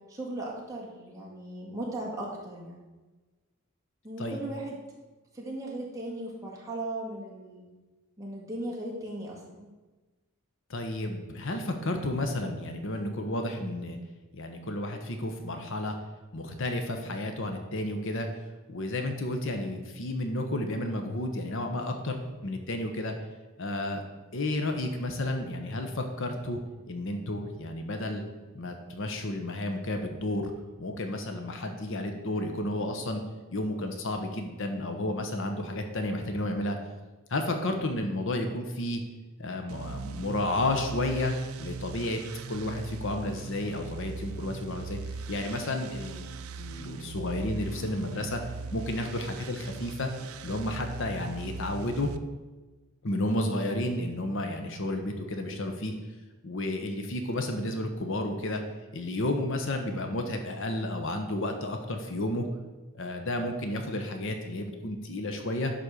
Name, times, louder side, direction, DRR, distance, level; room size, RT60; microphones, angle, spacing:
voice 1, 0.1-2.8 4.0-4.8 5.3-7.7 8.2-9.7, right 1 dB, 15° right, -4 dB, 2.2 m, -37 dB
voice 2, 10.7-14.0 14.3-16.0 16.3-18.3 18.7-23.1 23.6-24.0 24.3-26.6 26.9-28.2 28.5-30.5 30.8-33.2 33.5-36.8 37.3-39.0 39.4-42.2 42.5-45.0 45.3-48.4 48.7-50.1 50.4-52.1 53.0-55.9 56.4-58.6 58.9-62.4 62.9-65.7, left 1 dB, 55° left, 5 dB, 1.0 m, -32 dB
sound 1, 39.7-52.2, right 4 dB, 70° right, 0.5 m, -40 dB
11.0 x 4.3 x 6.7 m, 1.2 s
head